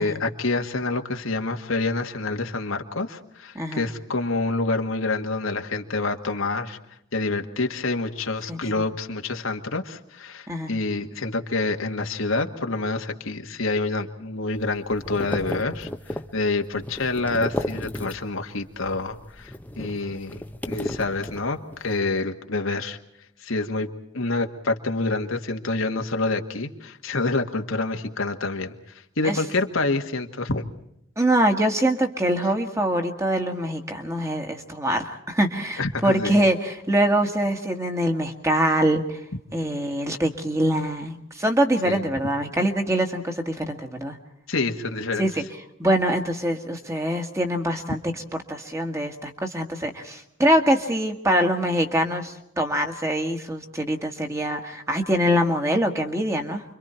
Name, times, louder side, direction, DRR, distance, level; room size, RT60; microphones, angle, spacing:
voice 1, 0.0-6.8 7.1-20.4 20.7-23.0 23.4-28.7 29.2-30.7 35.8-36.4 41.8-42.0 44.5-45.3, left 3 dB, 75° left, 4 dB, 1.7 m, -27 dB
voice 2, 3.5-3.9 8.5-8.8 10.5-10.7 29.2-29.4 31.2-39.2 39.5-44.2 45.2-45.4 45.8-48.0 48.5-56.6, right 1 dB, 15° right, 4 dB, 1.7 m, -24 dB
sound 1, 14.5-18.5 18.8-21.9, left 1 dB, 10° left, 0.8 m, -34 dB
29.5 x 24.0 x 4.5 m, 0.76 s
head